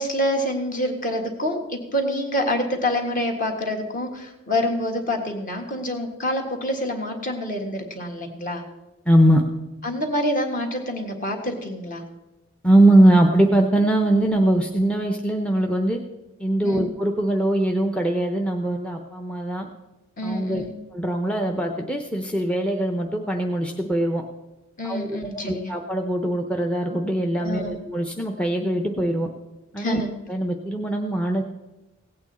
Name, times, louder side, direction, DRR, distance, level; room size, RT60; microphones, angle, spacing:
voice 1, 0.0-8.6 9.8-12.0 16.6-16.9 20.2-20.7 24.8-25.7 27.4-27.8 29.8-30.1, left 1 dB, 40° left, 3 dB, 1.7 m, -27 dB
voice 2, 9.1-9.4 12.6-16.0 16.4-19.7 20.2-20.6 20.9-24.2 24.8-29.3 29.7-30.0 30.3-31.4, right 1 dB, 5° left, 3 dB, 0.6 m, -21 dB
16.5 x 8.6 x 4.1 m, 1.1 s
head